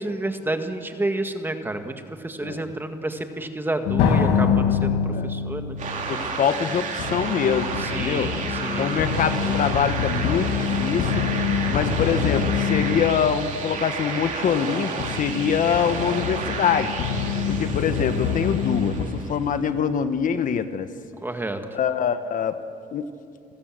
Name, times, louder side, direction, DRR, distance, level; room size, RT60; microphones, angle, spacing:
voice 1, 0.0-5.8 7.8-9.0 9.4-9.6 21.2-21.8, right 2 dB, 10° right, 6 dB, 1.8 m, -30 dB
sound 1, 3.8-19.0, left 7 dB, 90° left, 2.0 m, -26 dB
sound 2, 5.8-19.5, right 4 dB, 50° right, 3.4 m, -31 dB
voice 2, 6.1-8.3 8.8-11.2 11.7-17.0 17.5-20.9 21.7-22.6 22.9-23.1, left 7 dB, 50° left, 10 dB, 1.1 m, -24 dB
28.5 x 16.0 x 7.7 m, 2.4 s
cardioid pair, 110°, 17 cm